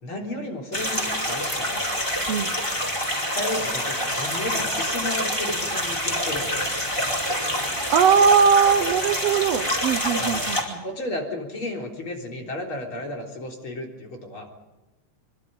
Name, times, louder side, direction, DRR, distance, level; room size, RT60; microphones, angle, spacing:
voice 1, 0.0-1.8 3.1-6.7 10.2-10.4 10.8-14.5, left 1 dB, 35° left, 2 dB, 4.2 m, -33 dB
sound 1, 0.7-10.6, equal, 10° left, 4.5 m, -26 dB
voice 2, 7.6-10.9, right 7 dB, 80° right, 10 dB, 1.4 m, -20 dB
25.5 x 24.5 x 5.3 m, 1.1 s
omnidirectional pair, 4.0 m